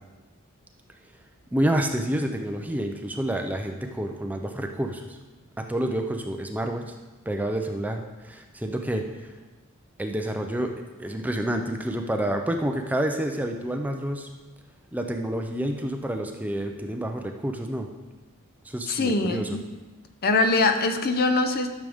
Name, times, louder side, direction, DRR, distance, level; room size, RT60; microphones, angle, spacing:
voice 1, 1.5-5.2 5.6-6.9 7.3-9.3 10.0-10.7 11.0-14.3 14.9-17.9 18.6-19.5, right 1 dB, 5° right, 4 dB, 0.5 m, -28 dB
voice 2, 18.9-19.6 20.2-21.7, left 3 dB, 45° left, 7 dB, 0.7 m, -23 dB
12.5 x 6.5 x 3.5 m, 1.2 s
head